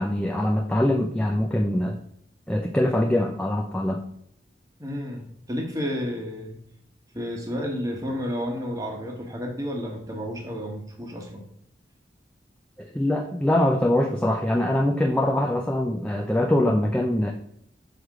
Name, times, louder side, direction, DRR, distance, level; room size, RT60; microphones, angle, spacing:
voice 1, 0.0-2.0 2.5-4.0 12.8-17.3, left 1 dB, 5° left, 1 dB, 0.4 m, -23 dB
voice 2, 4.8-6.6 7.1-11.4, equal, 20° right, 1 dB, 1.3 m, -31 dB
6.5 x 4.8 x 3.7 m, 0.71 s
head